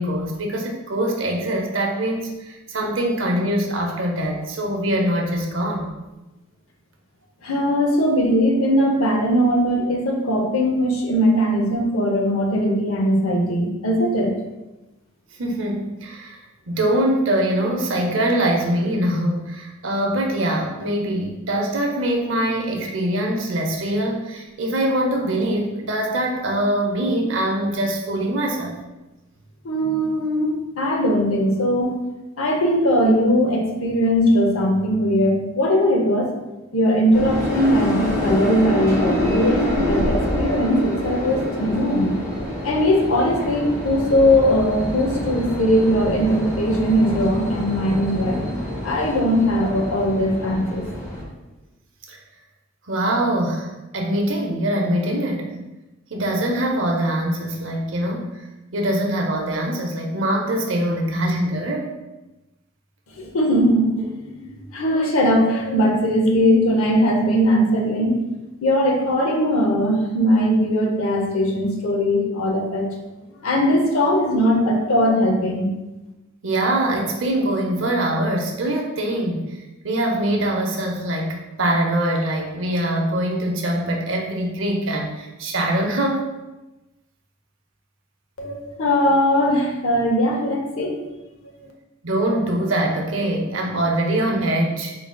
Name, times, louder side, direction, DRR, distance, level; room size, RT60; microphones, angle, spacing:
voice 1, 0.0-5.9 15.4-16.4 16.7-28.7 52.1-52.2 52.9-55.6 56.1-58.3 58.7-61.9 76.4-79.6 79.8-86.3 92.0-95.0, right 1 dB, 65° right, 1 dB, 0.7 m, -23 dB
voice 2, 7.4-14.3 29.6-32.0 32.4-36.3 36.7-42.1 42.6-48.5 48.8-50.9 63.2-68.2 68.6-72.9 73.4-75.7 88.4-91.1 91.4-91.7, equal, 85° left, 1 dB, 0.7 m, -20 dB
sound 1, 37.1-51.2, left 1 dB, 15° left, 0.9 m, -26 dB
3.9 x 3.6 x 2.2 m, 1.0 s
head